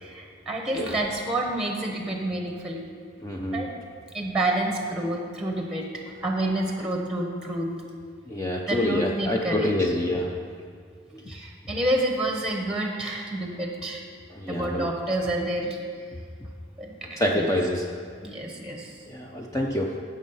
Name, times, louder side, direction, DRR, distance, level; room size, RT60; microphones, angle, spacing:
voice 1, 0.0-2.8 3.5-3.7 4.1-7.7 8.7-9.9 11.3-14.0 14.5-15.8 16.8-17.5 18.2-19.0, right 1 dB, 5° right, 1 dB, 1.0 m, -29 dB
voice 2, 3.2-3.7 8.3-10.4 11.1-11.2 14.3-14.9 17.1-17.9 19.1-20.0, left 1 dB, 15° left, 0 dB, 0.6 m, -26 dB
16.0 x 6.3 x 5.6 m, 2.1 s
head